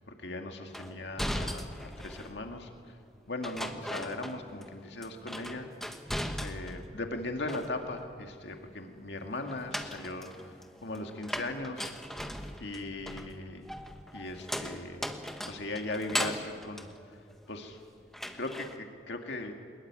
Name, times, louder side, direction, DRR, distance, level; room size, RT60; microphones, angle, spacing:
voice 1, 0.2-2.7 3.3-5.7 6.4-10.3 10.8-11.9 12.6-13.6 14.1-15.1 15.5-16.9 17.5-17.8 18.3-19.5, left 2 dB, 75° left, 4 dB, 2.1 m, -38 dB
sound 1, 0.7-2.4 3.4-4.7 5.0-6.9 7.2-8.1 9.4-17.8 18.1-18.8, equal, ahead, 1.4 m, -38 dB
23.5 x 21.0 x 9.7 m, 2.2 s
head